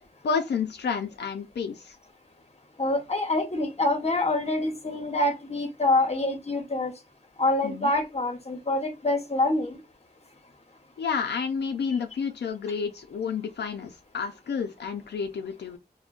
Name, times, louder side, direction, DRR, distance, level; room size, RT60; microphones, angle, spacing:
voice 1, 0.2-2.0 7.6-7.9 11.0-15.8, left 6 dB, 85° left, 0.4 m, -30 dB
voice 2, 2.8-6.9 7.4-9.8, left 2 dB, 40° left, 0.8 m, -26 dB
3.6 x 2.1 x 2.4 m
cardioid pair, 40°, 17 cm